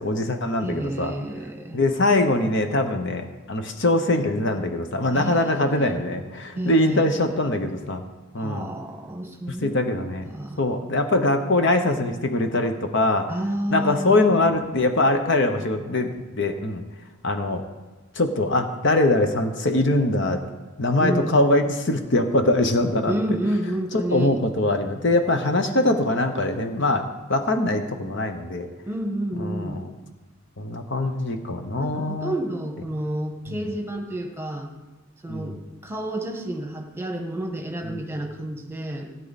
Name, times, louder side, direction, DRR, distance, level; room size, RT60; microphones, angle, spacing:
voice 1, 0.0-1.1 1.7-8.0 8.3-8.7 9.5-10.2 10.6-13.3 13.7-16.8 17.2-17.6 18.1-20.4 20.8-23.1 23.9-28.7 29.4-29.9 30.6-32.3 35.3-35.6 37.9-38.0, left 2 dB, 55° left, 6 dB, 0.9 m, -22 dB
voice 2, 0.6-1.8 5.1-5.9 6.5-7.2 8.4-9.9 10.3-10.7 13.3-14.2 21.0-21.4 23.0-24.3 28.8-29.8 31.8-34.7 35.2-39.1, right 1 dB, 10° right, 2 dB, 1.4 m, -30 dB
16.5 x 9.1 x 4.2 m, 1.2 s
head